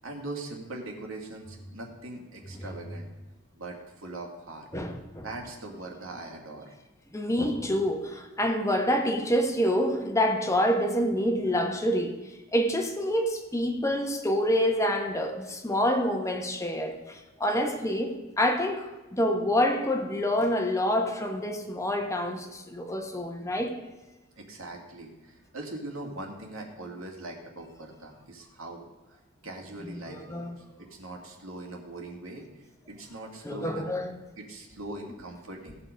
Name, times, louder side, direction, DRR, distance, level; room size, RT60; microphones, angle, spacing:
voice 1, 0.0-3.1 3.5-4.7 5.2-6.7 24.4-29.2 29.4-33.9 34.4-35.8, right 2 dB, 80° right, 2.3 m, -41 dB
voice 2, 4.7-5.3 7.1-12.2 12.5-23.8 29.9-30.0 30.3-30.5 33.4-34.2, equal, 15° left, 1.0 m, -27 dB
17.0 x 5.9 x 5.1 m
head